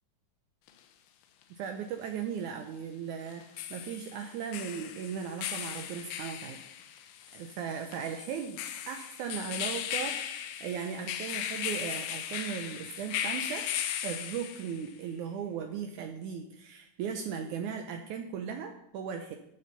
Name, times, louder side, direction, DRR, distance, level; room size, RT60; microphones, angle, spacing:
sound 1, 0.7-0.8 3.3-14.9, left 10 dB, 80° left, 2.3 m, -37 dB
voice 1, 1.5-6.6 7.3-13.6 14.0-19.4, right 7 dB, 80° right, 5 dB, 1.9 m, -37 dB
13.0 x 6.6 x 4.1 m, 0.81 s
omnidirectional pair, 3.9 m